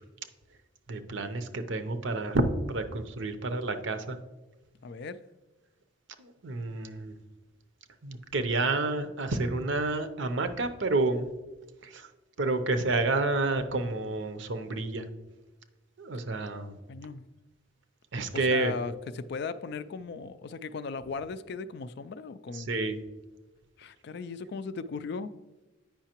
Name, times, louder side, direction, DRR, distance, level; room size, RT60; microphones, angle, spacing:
voice 1, 0.9-4.2 6.2-7.1 8.0-11.3 11.8-12.1 12.4-15.1 16.0-16.7 18.1-18.8 22.5-23.0, right 2 dB, 65° right, 0.7 m, -29 dB
voice 2, 4.8-5.2 16.9-17.3 18.3-22.7 23.8-25.4, left 4 dB, 55° left, 0.3 m, -37 dB
8.8 x 5.6 x 2.9 m
head